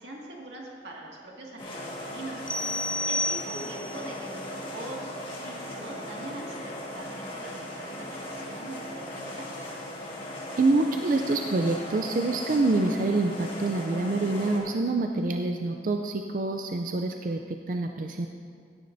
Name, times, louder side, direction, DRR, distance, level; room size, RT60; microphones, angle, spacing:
voice 1, 0.0-2.5 3.1-9.5, right 1 dB, 90° right, -3 dB, 2.0 m, -42 dB
sound 1, 1.6-14.6, left 1 dB, 30° left, 1.7 m, -38 dB
sound 2, 2.5-4.0, left 1 dB, 5° left, 0.6 m, -30 dB
voice 2, 10.6-18.3, right 2 dB, 50° right, 4 dB, 0.4 m, -26 dB
16.5 x 9.8 x 2.7 m, 2.2 s
head